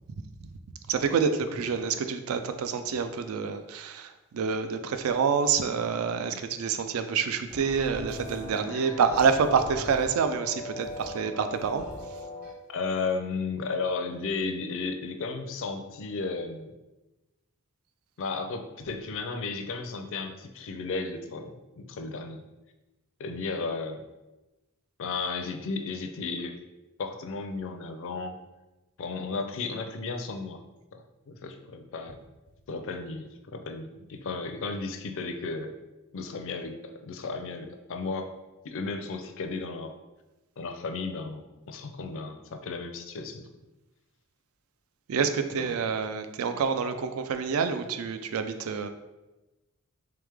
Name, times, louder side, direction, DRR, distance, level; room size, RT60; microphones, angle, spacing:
voice 1, 0.9-11.9 45.1-48.9, right 6 dB, 70° right, 9 dB, 0.4 m, -27 dB
sound 1, 7.5-12.5, left 1 dB, 40° right, 1.1 m, -40 dB
voice 2, 12.7-16.7 18.2-22.4 23.2-24.1 25.0-26.6 27.0-28.4 29.0-30.6 30.9-32.2 32.7-35.7 36.1-38.3 38.6-39.9 40.6-43.5 45.5-45.8, left 4 dB, 60° left, 6 dB, 0.5 m, -34 dB
3.5 x 3.3 x 3.4 m, 1.1 s
head